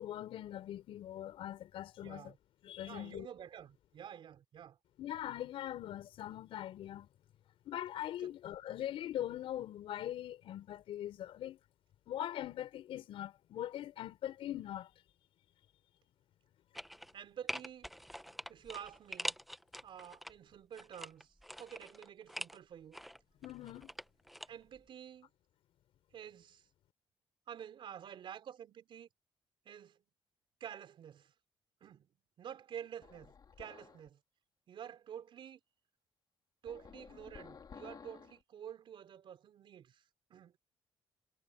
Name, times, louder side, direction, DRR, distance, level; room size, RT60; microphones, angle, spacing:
voice 1, 0.0-2.3 2.6-3.3 5.0-7.1 7.7-11.6 12.1-14.9 23.4-23.9, left 12 dB, 75° left, 5.5 m, -42 dB
voice 2, 2.0-2.4 2.8-4.8 8.2-8.4 17.1-17.9 18.5-19.4 19.8-23.0 24.5-25.3 26.1-26.7 27.5-29.1 29.7-30.0 30.6-31.3 31.8-32.1 32.4-34.2 34.7-35.6 36.6-40.0 40.3-40.6, right 9 dB, 65° right, 4.0 m, -49 dB
sound 1, 16.7-17.2 17.5-20.3 20.7-22.6 22.9-24.5 24.8-24.9, equal, ahead, 1.1 m, -44 dB
sound 2, 33.0-34.1 36.7-38.4, left 6 dB, 45° left, 4.7 m, -54 dB
cardioid pair, 80°, 9 cm